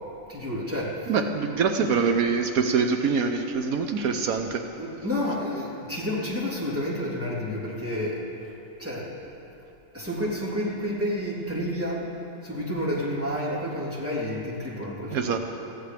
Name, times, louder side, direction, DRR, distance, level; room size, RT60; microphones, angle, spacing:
voice 1, 0.3-1.3 4.7-9.1 9.9-12.1 12.4-15.4, left 1 dB, 10° right, -7 dB, 3.3 m, -30 dB
voice 2, 1.1-4.6 15.1-15.4, right 5 dB, 80° right, 5 dB, 1.2 m, -24 dB
22.0 x 16.0 x 3.4 m, 2.9 s
omnidirectional pair, 1.5 m